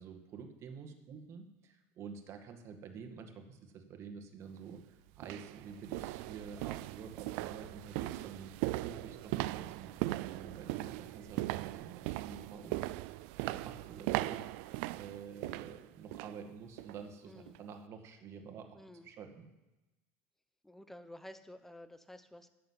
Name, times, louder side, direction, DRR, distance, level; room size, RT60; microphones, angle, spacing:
voice 1, 0.0-12.9 13.4-18.8 19.0-19.5, right 6 dB, 40° right, 5 dB, 1.8 m, -49 dB
sound 1, 4.5-4.6 5.2-16.4 16.8-17.0 17.5-17.6, right 18 dB, 70° right, 0.4 m, -39 dB
voice 2, 17.3-17.6 18.7-19.1 20.6-22.5, left 1 dB, 5° left, 12 dB, 0.8 m, -52 dB
11.5 x 6.7 x 8.0 m, 1.1 s
supercardioid pair, 135°, 7 cm